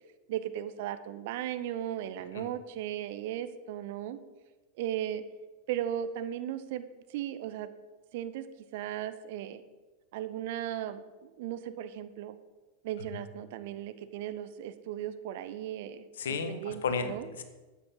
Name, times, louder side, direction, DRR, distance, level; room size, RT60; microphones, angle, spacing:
voice 1, 0.3-4.2 4.8-5.2 5.7-7.7 8.1-8.5 8.7-9.6 10.1-12.4 12.8-16.1 16.5-17.3, right 11 dB, 50° right, 12 dB, 0.9 m, -36 dB
voice 2, 16.2-17.4, left 5 dB, 60° left, 9 dB, 1.4 m, -33 dB
12.5 x 8.9 x 5.5 m, 1.2 s
figure-of-eight pair, 90°, 0 cm